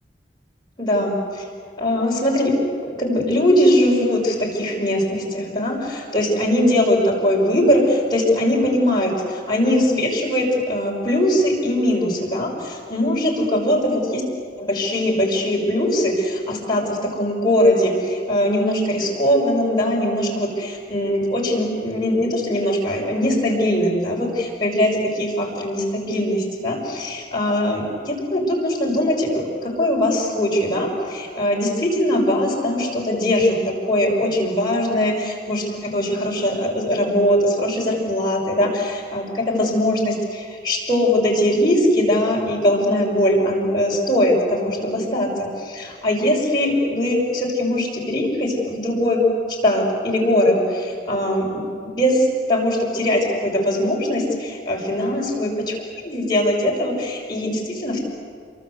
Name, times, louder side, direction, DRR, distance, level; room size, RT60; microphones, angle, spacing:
voice 1, 0.8-1.4 1.8-14.2 14.6-49.3 49.6-51.6 51.9-55.8 56.0-58.0, left 1 dB, 25° left, -3 dB, 6.1 m, -21 dB
28.0 x 24.0 x 8.2 m, 2.1 s
head